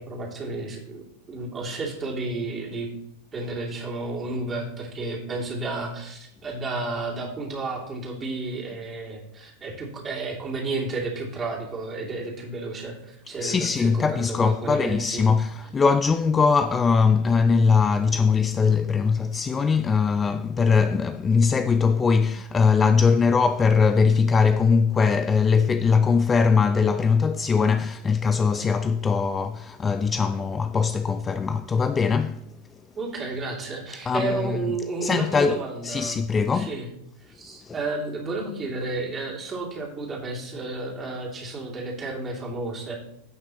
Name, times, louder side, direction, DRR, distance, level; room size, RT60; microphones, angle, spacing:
voice 1, 0.0-2.9 3.3-15.2 33.0-36.2 36.5-36.9 37.3-43.0, right 3 dB, 20° right, 2.7 m, -32 dB
voice 2, 13.4-32.5 34.1-34.6 35.0-36.7 37.6-37.7, left 5 dB, 20° left, 0.3 m, -21 dB
16.0 x 5.8 x 3.0 m
figure-of-eight pair, 90°, 0 cm